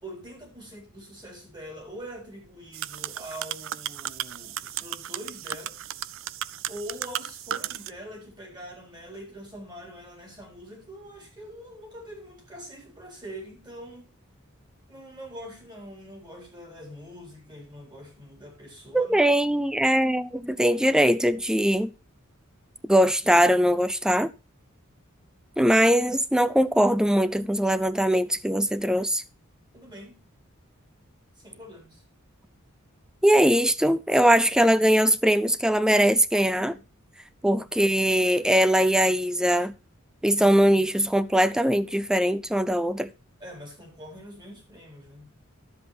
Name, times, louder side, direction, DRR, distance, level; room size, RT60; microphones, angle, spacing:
voice 1, 0.0-5.8 6.7-14.1 14.9-19.2 29.7-30.2 31.4-32.0 43.4-45.3, equal, 20° right, 4.1 m, -43 dB
sound 1, 2.7-7.9, right 12 dB, 65° right, 0.4 m, -35 dB
voice 2, 18.9-21.9 22.8-24.3 25.6-29.2 33.2-36.8 37.4-39.7 40.2-43.1, equal, 5° right, 0.5 m, -21 dB
11.5 x 7.6 x 4.1 m
head